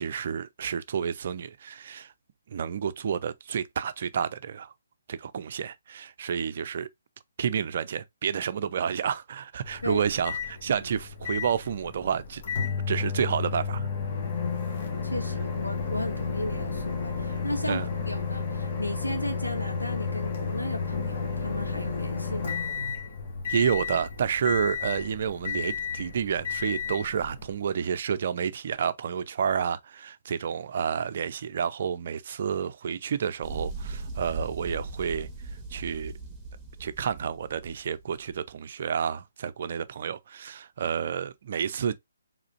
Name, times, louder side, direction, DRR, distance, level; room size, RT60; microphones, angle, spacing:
voice 1, 0.0-2.1 2.5-4.7 5.1-6.9 7.4-12.4 12.9-13.9 17.7-17.9 23.5-35.3 35.7-36.1 36.8-42.0, right 7 dB, 45° right, 0.6 m, -30 dB
Microwave oven, 9.6-27.6, left 5 dB, 40° left, 1.5 m, -32 dB
voice 2, 14.3-14.6 15.0-17.8 18.1-22.6, left 1 dB, 90° left, 1.7 m, -35 dB
sound 1, 33.4-38.3, right 3 dB, 10° right, 2.1 m, -38 dB
5.0 x 3.7 x 2.5 m
figure-of-eight pair, 135°, 0 cm